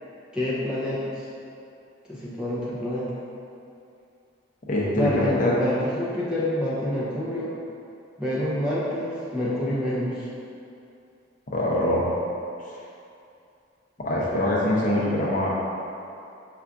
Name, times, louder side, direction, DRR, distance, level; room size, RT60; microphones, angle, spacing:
voice 1, 0.3-1.3 2.1-3.1 4.9-7.5 8.2-10.3, left 1 dB, 5° right, -9 dB, 0.6 m, -27 dB
voice 2, 4.7-5.5 11.5-12.0 14.0-15.5, left 1 dB, 40° left, -6 dB, 0.7 m, -23 dB
5.6 x 2.5 x 3.6 m, 2.6 s
head